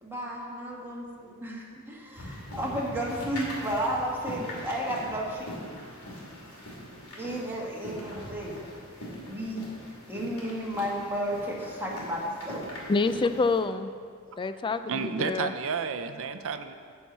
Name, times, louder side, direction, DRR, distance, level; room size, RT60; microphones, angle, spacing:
voice 1, 0.0-5.5 7.1-8.6 9.3-9.6 10.1-12.8, equal, 10° right, -3 dB, 1.4 m, -33 dB
sound 1, 2.1-13.6, equal, 90° left, 2.6 m, -42 dB
voice 2, 12.9-13.9 14.4-15.5, left 3 dB, 20° left, 11 dB, 0.3 m, -27 dB
voice 3, 14.9-16.7, right 5 dB, 65° right, 9 dB, 0.5 m, -31 dB
9.8 x 4.6 x 7.2 m, 2.1 s
head